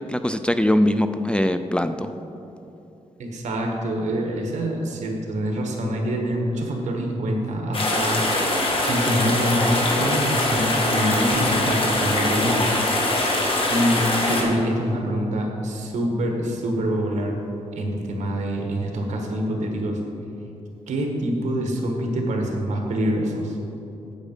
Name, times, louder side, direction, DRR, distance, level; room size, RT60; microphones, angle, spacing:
voice 1, 0.0-2.1, left 1 dB, 10° left, 9 dB, 0.3 m, -22 dB
voice 2, 3.2-8.2 8.9-12.7 13.7-17.4 17.7-20.0 20.9-23.6, equal, 80° right, 1 dB, 1.5 m, -25 dB
sound 1, 7.7-14.4, left 1 dB, 45° left, 1.8 m, -22 dB
8.2 x 8.1 x 5.4 m, 2.9 s
wide cardioid pair, 110°, 12 cm